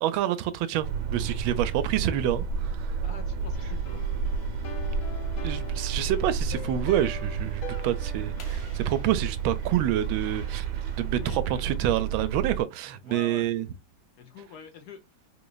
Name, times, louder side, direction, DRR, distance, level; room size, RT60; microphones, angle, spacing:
voice 1, 0.0-3.0 5.4-10.7 11.0-13.7, right 11 dB, 85° right, 1.4 m, -28 dB
sound 1, 0.8-12.6, right 6 dB, 65° right, 1.4 m, -31 dB
voice 2, 3.0-4.0 11.2-11.7 13.0-13.5 14.2-15.0, left 5 dB, 70° left, 1.0 m, -45 dB
sound 2, 3.5-8.5, left 4 dB, 90° left, 1.6 m, -43 dB
sound 3, 8.4-11.0, left 4 dB, 55° left, 1.4 m, -53 dB
3.9 x 3.0 x 2.3 m
omnidirectional pair, 2.1 m